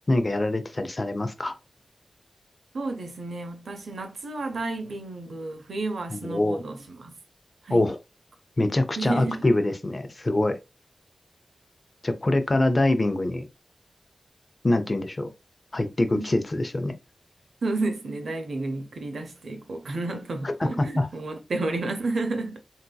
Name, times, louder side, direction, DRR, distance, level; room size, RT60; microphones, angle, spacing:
voice 1, 0.1-1.5 6.1-6.6 7.7-8.0 8.6-10.6 12.0-13.5 14.6-15.3 15.7-16.9 20.4-20.7 21.0-21.1, left 2 dB, 35° left, 0.6 m, -24 dB
voice 2, 2.7-7.2 7.6-7.9 9.0-9.5 16.1-16.3 17.6-22.6, right 2 dB, 75° right, 0.6 m, -31 dB
3.5 x 2.7 x 2.2 m
wide cardioid pair, 75°, 0 cm